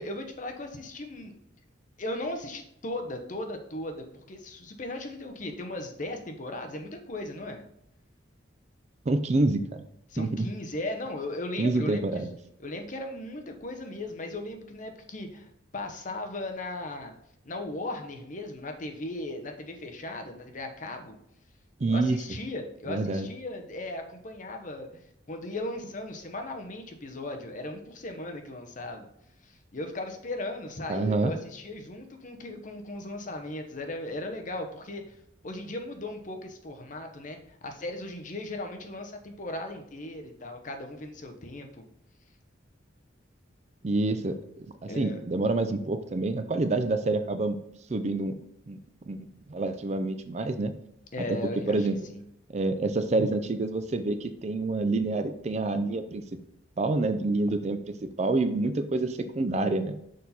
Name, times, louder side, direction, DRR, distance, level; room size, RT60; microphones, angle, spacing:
voice 1, 0.0-1.4 2.0-7.6 10.1-12.2 12.6-17.1 17.4-21.2 21.9-25.0 25.3-29.1 29.4-35.2 35.4-41.8 44.9-45.2 51.1-52.2, left 1 dB, 40° left, 4 dB, 0.9 m, -37 dB
voice 2, 9.1-9.8 10.2-10.5 11.6-12.3 21.8-22.2 22.9-23.3 30.9-31.3 43.8-47.6 47.9-48.3 48.7-48.8 49.1-49.2 49.5-50.7 51.7-52.0 52.5-56.2 56.8-60.0, right 2 dB, 35° right, 9 dB, 0.4 m, -27 dB
6.4 x 4.3 x 4.0 m, 0.76 s
head